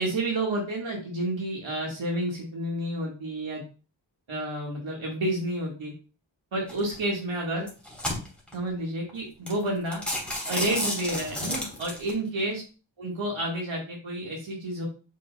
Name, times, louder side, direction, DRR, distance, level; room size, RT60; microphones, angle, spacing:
voice 1, 0.0-3.6 4.3-5.9 6.5-7.7 8.5-10.0 10.4-12.6 13.0-14.9, right 1 dB, 80° right, -2 dB, 1.7 m, -30 dB
sound 1, 6.7-7.0 7.6-8.6 9.1-9.2 9.5-9.6 9.9-12.1, left 1 dB, ahead, 2.5 m, -31 dB
8.0 x 5.5 x 2.2 m, 0.34 s
wide cardioid pair, 85°, 46 cm